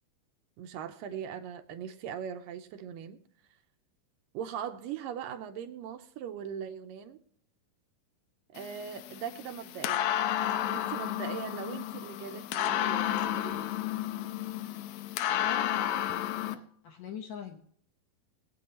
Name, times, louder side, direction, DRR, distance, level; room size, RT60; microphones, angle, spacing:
voice 1, 0.6-3.2 4.3-7.2 8.5-10.1 10.7-13.7, right 8 dB, 80° right, 2.3 m, -40 dB
sound 1, 8.6-16.5, left 12 dB, 90° left, 2.5 m, -32 dB
voice 2, 15.3-17.6, left 7 dB, 70° left, 1.7 m, -43 dB
23.0 x 8.5 x 2.8 m
omnidirectional pair, 4.2 m